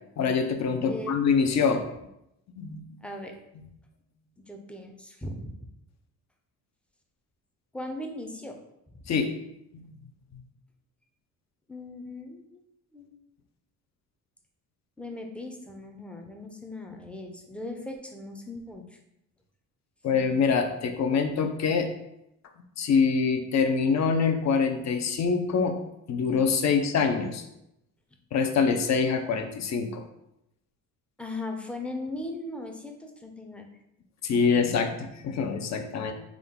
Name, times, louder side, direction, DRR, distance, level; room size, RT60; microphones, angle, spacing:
voice 1, 0.2-1.8 2.5-2.8 9.1-9.3 9.7-9.9 20.0-21.9 22.8-25.8 26.1-27.4 28.3-30.0 34.2-36.1, left 5 dB, 50° left, 6 dB, 0.6 m, -25 dB
voice 2, 3.0-3.4 4.4-5.6 7.7-8.6 8.9-9.0 11.7-12.6 12.9-13.2 15.0-19.0 31.2-33.7, left 2 dB, 5° left, 3 dB, 0.5 m, -38 dB
3.7 x 2.3 x 3.6 m, 0.83 s
cardioid pair, 85°, 37 cm